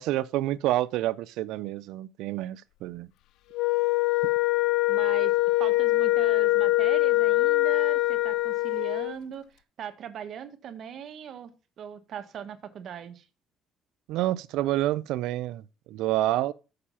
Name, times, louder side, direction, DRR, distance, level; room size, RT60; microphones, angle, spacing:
voice 1, 0.0-3.1 14.1-15.6 15.9-16.5, right 15 dB, 85° right, 0.5 m, -28 dB
Wind instrument woodwind instrument, 3.5-9.2, left 18 dB, 80° left, 0.3 m, -23 dB
voice 2, 4.9-5.3 5.6-9.4 9.8-11.5 11.8-13.2, right 9 dB, 60° right, 1.2 m, -40 dB
6.8 x 5.0 x 5.7 m
cardioid pair, 100°, 0 cm